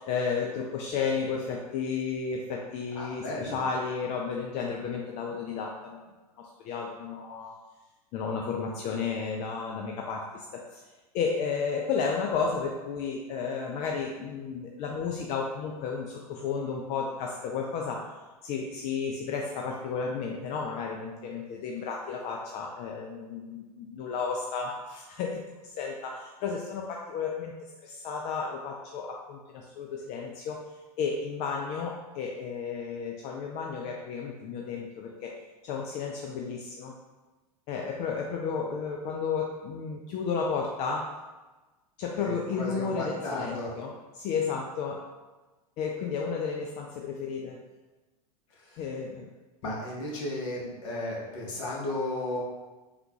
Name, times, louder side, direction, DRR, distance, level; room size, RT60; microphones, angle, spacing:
voice 1, 0.0-6.1 6.4-7.5 8.1-10.8 11.1-18.1 18.4-30.6 31.0-35.3 35.6-36.9 37.7-41.1 42.0-45.0 45.8-47.6 48.8-49.3, left 5 dB, 35° left, 0 dB, 0.3 m, -33 dB
voice 2, 3.0-3.6 42.2-43.7 48.5-48.8 49.6-52.4, left 1 dB, 55° left, -3 dB, 1.1 m, -34 dB
3.6 x 2.3 x 2.9 m, 1.2 s
figure-of-eight pair, 90°, 20 cm